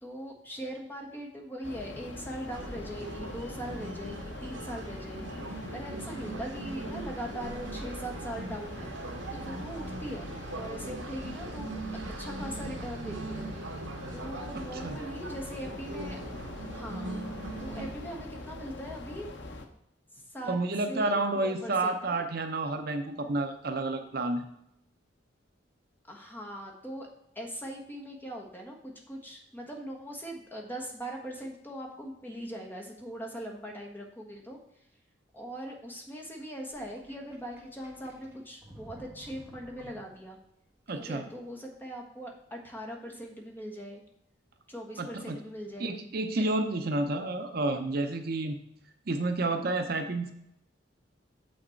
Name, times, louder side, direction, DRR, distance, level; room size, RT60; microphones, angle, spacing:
voice 1, 0.0-5.4 5.7-8.9 9.3-11.8 12.2-13.4 14.1-16.2 16.7-17.2 17.6-19.3 20.1-20.6 20.9-22.2 26.1-27.1 27.3-34.6 35.3-40.4 40.9-44.0 44.7-45.9 46.3-46.5, equal, 10° left, 0 dB, 1.4 m, -41 dB
sound 1, 1.6-19.7, left 2 dB, 70° left, 1.0 m, -43 dB
sound 2, 2.5-17.9, right 2 dB, 80° right, 1.0 m, -40 dB
voice 2, 14.5-15.0 20.4-24.5 40.9-41.2 45.0-45.4 45.8-48.6 49.1-50.3, right 2 dB, 50° right, 6 dB, 0.7 m, -30 dB
Sink (filling or washing), 36.7-40.5, right 1 dB, 10° right, 1.5 m, -52 dB
7.2 x 6.3 x 4.5 m, 0.79 s
head